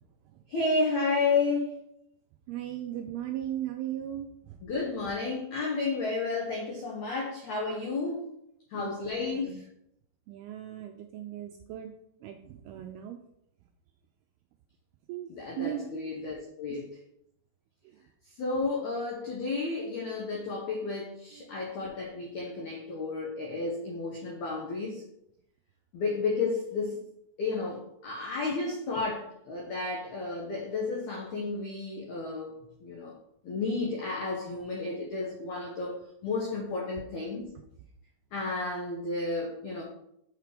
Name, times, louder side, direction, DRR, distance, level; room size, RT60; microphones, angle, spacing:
voice 1, 0.5-1.8 4.6-8.3 8.7-9.7 15.3-16.9 18.4-25.0 25.9-27.0 27.4-32.5 32.8-33.1 33.4-36.0 36.2-37.5 38.3-39.8, left 3 dB, 80° left, -3 dB, 1.7 m, -32 dB
voice 2, 2.5-4.6 8.7-9.6 10.3-11.9 12.2-13.2 15.1-15.3 15.6-15.9 16.7-16.8 21.3-21.6, right 11 dB, 85° right, 5 dB, 2.2 m, -38 dB
6.4 x 4.7 x 5.0 m, 0.78 s
omnidirectional pair, 4.9 m